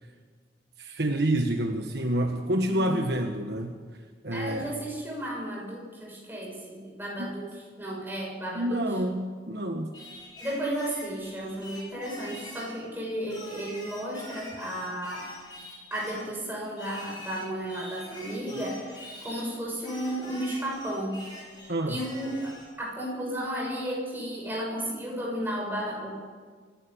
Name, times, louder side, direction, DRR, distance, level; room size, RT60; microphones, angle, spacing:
voice 1, 0.8-3.7 4.2-4.7 7.2-7.3 8.5-9.9 21.7-22.0, right 1 dB, 60° right, 4 dB, 1.4 m, -28 dB
voice 2, 2.7-3.1 4.3-7.5 7.8-8.9 10.4-15.3 15.9-21.2 21.6-26.1, right 1 dB, 10° right, -2 dB, 6.9 m, -33 dB
Singing, 9.9-12.8 13.3-16.3 16.8-19.5 19.8-22.7, left 1 dB, 20° left, 7.2 m, -45 dB
25.0 x 12.0 x 8.8 m, 1.5 s
head